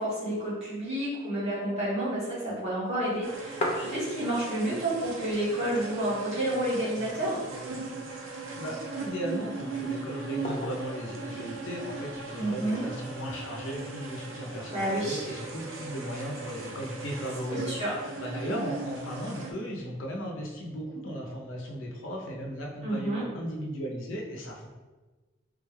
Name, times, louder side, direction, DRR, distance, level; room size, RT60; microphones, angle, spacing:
voice 1, 0.0-7.4 12.4-12.9 14.7-15.2 17.5-17.9 22.8-23.2, right 1 dB, 30° right, -9 dB, 1.3 m, -30 dB
sound 1, 3.1-4.6 5.0-5.1 5.2-6.0 6.5-6.6 7.1-7.9 8.6-9.2 10.4-11.0 12.1-12.7, left 1 dB, 35° left, 0.4 m, -36 dB
sound 2, 3.2-19.5, right 3 dB, 90° right, 0.6 m, -39 dB
voice 2, 8.6-17.8 18.1-24.7, equal, 85° left, -1 dB, 0.6 m, -36 dB
3.6 x 2.3 x 3.1 m, 1.2 s
head